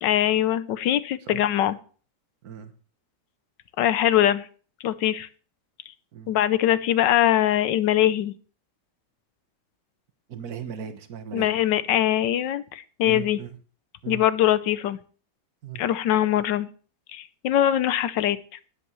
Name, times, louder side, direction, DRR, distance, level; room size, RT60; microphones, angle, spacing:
voice 1, 0.0-1.8 3.8-4.5 4.8-5.3 6.3-8.3 11.3-13.4 14.1-15.0 15.8-16.7 17.1-18.4, left 12 dB, 80° left, 14 dB, 1.4 m, -22 dB
voice 2, 10.3-11.5 13.0-13.6 14.0-14.2 15.6-15.8, right 8 dB, 60° right, 9 dB, 1.6 m, -37 dB
18.5 x 8.0 x 3.2 m, 0.40 s
omnidirectional pair, 1.9 m